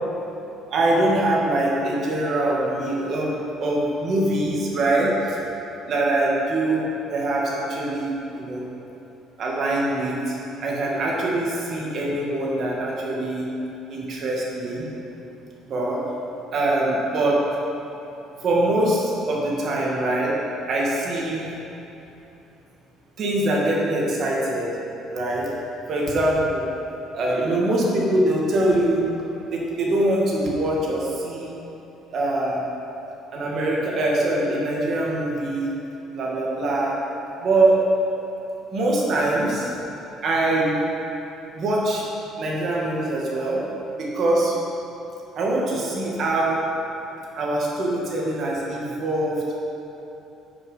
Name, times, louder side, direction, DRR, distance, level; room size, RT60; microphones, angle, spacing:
voice 1, 0.7-5.4 5.9-8.7 9.4-10.4 10.6-13.5 13.9-14.9 15.6-16.0 16.5-17.4 18.4-20.4 20.7-21.5 23.2-24.7 25.1-25.5 25.9-26.6 27.1-29.0 29.5-31.5 32.1-32.6 33.3-35.7 36.1-36.9 37.4-37.8 38.7-39.7 40.2-40.8 41.5-42.0 42.4-43.6 44.0-44.5 45.3-46.6 47.4-49.6, right 1 dB, 45° right, -4 dB, 1.9 m, -23 dB
9.1 x 6.5 x 5.6 m, 2.9 s
cardioid pair, 155°, 0 cm